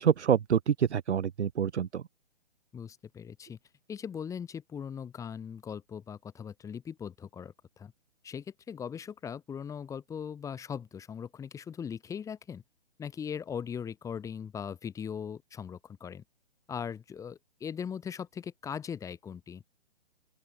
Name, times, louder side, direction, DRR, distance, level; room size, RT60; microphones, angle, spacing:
voice 1, 0.0-2.0, right 8 dB, 75° right, 0.5 m, -26 dB
voice 2, 2.7-3.6 3.9-7.9 8.2-12.6 13.0-16.2 16.7-19.6, left 7 dB, 10° left, 2.5 m, -39 dB
open air
figure-of-eight pair, 125°, 34 cm